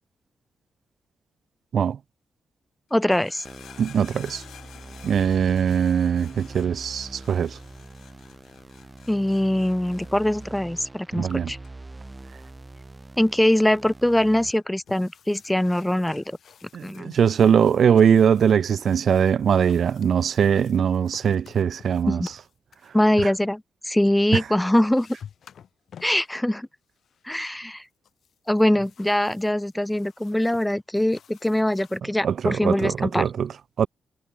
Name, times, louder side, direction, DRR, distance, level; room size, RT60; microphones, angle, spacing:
sound 1, 2.9-14.3 14.5-15.1 15.3-17.3 17.7-18.4 19.1-19.2, left 10 dB, 85° left, 7.5 m, -52 dB
voice 1, 2.9-3.4 9.1-11.6 13.2-16.4 16.8-17.2 22.1-22.3 22.9-25.1 26.0-26.7 27.3-27.8 28.5-33.2, left 1 dB, 5° left, 0.8 m, -22 dB
sound 2, 3.4-14.5, right 2 dB, 15° right, 4.5 m, -43 dB
voice 2, 3.8-4.4 5.0-7.6 11.1-11.5 16.7-22.3 23.2-23.3 24.3-24.4 32.2-33.5 33.8-33.9, right 8 dB, 60° right, 0.5 m, -21 dB
sound 3, 14.9-22.9 24.3-24.4 24.7-26.4 27.0-27.3 28.0-32.0, left 8 dB, 65° left, 5.2 m, -51 dB
cardioid pair, 120°, 0 cm